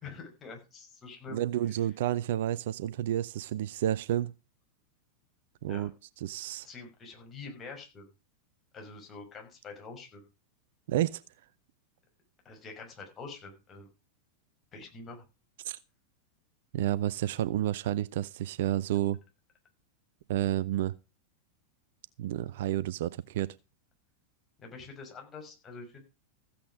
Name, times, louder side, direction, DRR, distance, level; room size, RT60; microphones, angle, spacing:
voice 1, 0.0-1.4 5.7-5.9 6.6-8.1 8.7-10.3 12.4-13.9 14.7-15.2 24.6-26.0, left 4 dB, 25° left, 5.9 m, -46 dB
voice 2, 1.3-4.3 5.6-5.9 6.2-6.7 10.9-11.2 15.6-15.8 16.7-19.2 20.3-20.9 22.2-23.6, right 12 dB, 55° right, 0.6 m, -30 dB
15.0 x 8.6 x 5.0 m
figure-of-eight pair, 90°, 0 cm